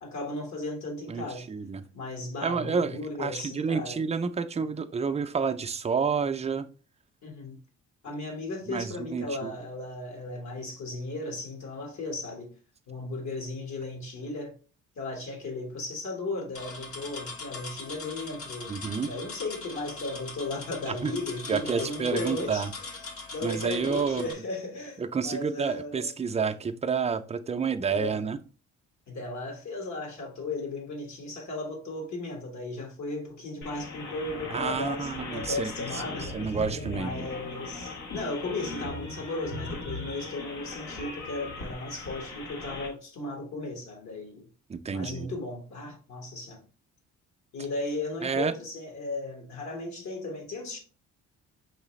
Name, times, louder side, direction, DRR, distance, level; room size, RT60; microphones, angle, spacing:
voice 1, 0.0-1.5 1.9-4.0 7.2-7.6 8.0-12.5 12.9-14.5 15.0-22.9 23.3-26.1 27.9-28.3 29.1-36.4 36.9-44.5 44.9-46.6 47.5-50.8, left 2 dB, 65° left, 1.5 m, -36 dB
voice 2, 1.1-1.8 2.4-6.7 8.7-9.5 18.7-19.1 20.9-21.1 21.5-22.7 23.4-24.3 25.0-28.4 34.5-36.0 36.3-37.1 44.7-45.3 48.2-48.5, right 5 dB, 20° right, 0.4 m, -29 dB
sound 1, 16.5-24.3, left 3 dB, 50° left, 0.9 m, -41 dB
sound 2, 33.6-42.9, left 2 dB, 85° left, 1.3 m, -38 dB
4.8 x 3.2 x 3.1 m
cardioid pair, 90°, 30 cm